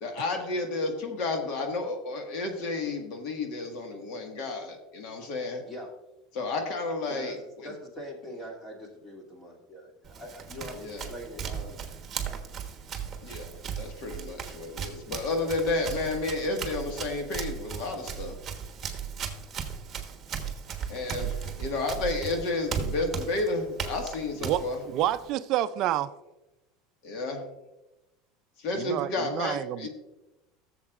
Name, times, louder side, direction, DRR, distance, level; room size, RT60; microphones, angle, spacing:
voice 1, 0.0-5.6 6.3-7.4 10.8-11.1 13.2-13.5 13.8-18.4 20.9-24.8 27.0-27.5 28.6-29.9, left 3 dB, 60° left, 1.7 m, -31 dB
voice 2, 7.0-12.0, equal, 25° left, 2.6 m, -43 dB
Run, 10.0-25.3, right 7 dB, 30° right, 1.3 m, -37 dB
voice 3, 24.4-26.1 28.8-29.9, right 12 dB, 50° right, 0.4 m, -29 dB
15.0 x 7.2 x 2.5 m
supercardioid pair, 135°, 0 cm